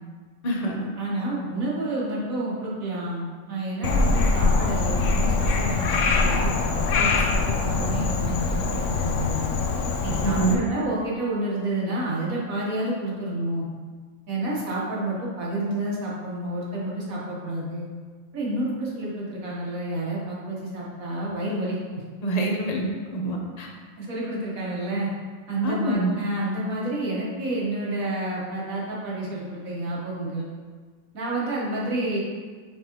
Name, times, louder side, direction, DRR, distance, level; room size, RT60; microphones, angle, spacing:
voice 1, 0.4-0.8 10.2-10.6 22.2-22.8 23.1-23.7 25.6-26.2, right 2 dB, 35° left, -1 dB, 0.8 m, -25 dB
voice 2, 1.0-9.4 10.0-13.7 14.3-17.9 18.3-21.8 24.0-25.1 25.5-30.5 31.1-32.2, right 1 dB, 80° right, -5 dB, 1.7 m, -29 dB
Frog, 3.8-10.5, left 3 dB, 70° left, 0.9 m, -23 dB
8.6 x 3.7 x 3.0 m, 1.5 s
omnidirectional pair, 1.4 m